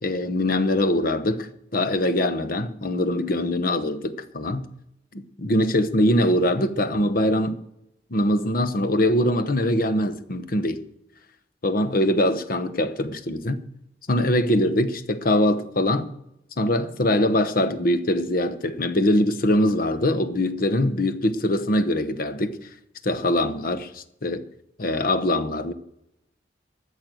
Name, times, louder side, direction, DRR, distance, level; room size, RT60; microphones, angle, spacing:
voice 1, 0.0-4.7 5.1-7.6 8.1-10.8 11.6-13.6 14.1-16.1 16.6-22.7 23.0-24.5 24.8-25.7, left 1 dB, 50° left, 1.0 m, -23 dB
13.5 x 6.7 x 7.8 m
head